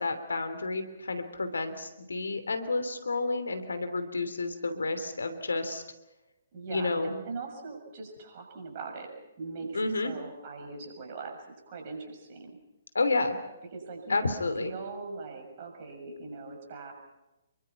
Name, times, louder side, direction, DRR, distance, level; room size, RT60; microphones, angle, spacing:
voice 1, 0.0-5.8 6.7-7.2 9.7-10.1 12.9-13.4 14.1-14.7, left 3 dB, 70° left, 9 dB, 3.0 m, -30 dB
voice 2, 6.5-9.1 9.4-12.5 13.7-16.9, right 4 dB, 40° right, 3 dB, 6.9 m, -41 dB
28.0 x 23.5 x 5.9 m, 0.97 s
figure-of-eight pair, 130°, 0 cm